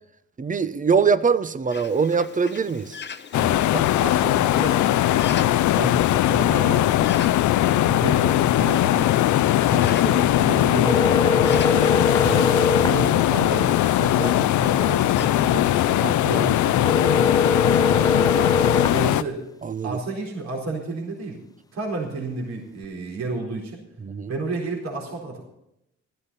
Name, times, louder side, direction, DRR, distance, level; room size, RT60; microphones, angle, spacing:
voice 1, 0.4-3.0 5.8-5.9 12.2-12.8 17.9-18.1 19.6-20.0 24.0-24.3, right 5 dB, 25° right, 14 dB, 0.8 m, -23 dB
Bird, 1.7-15.3, left 6 dB, 35° left, 0.9 m, -42 dB
sound 1, 3.3-19.2, left 13 dB, 75° left, 0.6 m, -20 dB
voice 2, 3.3-7.2 7.6-9.1 9.7-12.1 12.7-17.8 18.8-19.4 19.8-21.4 21.7-23.8 24.3-25.4, right 3 dB, 60° right, -2 dB, 4.2 m, -32 dB
sound 2, 10.8-13.0 16.8-19.0, left 3 dB, 15° left, 0.4 m, -22 dB
15.0 x 13.5 x 4.1 m, 0.82 s
cardioid pair, 90°, 30 cm